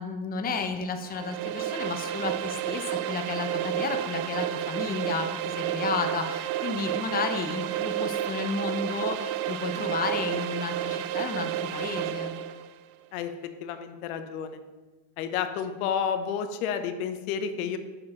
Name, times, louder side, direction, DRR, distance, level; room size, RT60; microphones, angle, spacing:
voice 1, 0.0-12.3, left 4 dB, 20° left, 7 dB, 0.6 m, -32 dB
sound 1, 1.0-12.7, right 11 dB, 55° right, 0.5 m, -31 dB
voice 2, 13.1-14.6 15.2-17.8, left 7 dB, 85° left, 8 dB, 0.7 m, -31 dB
6.5 x 4.5 x 4.3 m, 1.2 s
supercardioid pair, 105°, 42 cm